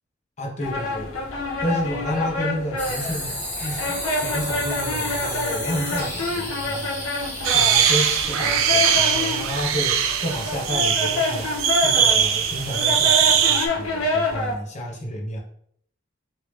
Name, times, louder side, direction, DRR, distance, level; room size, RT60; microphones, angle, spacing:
voice 1, 0.4-7.3 7.5-15.4, equal, 35° left, -1 dB, 0.7 m, -31 dB
sound 1, 0.6-14.6, left 2 dB, 85° left, 0.8 m, -27 dB
sound 2, 2.8-8.2, left 1 dB, 10° left, 1.3 m, -32 dB
sound 3, 7.4-13.7, right 8 dB, 75° right, 0.4 m, -21 dB
3.2 x 2.7 x 3.2 m, 0.66 s
head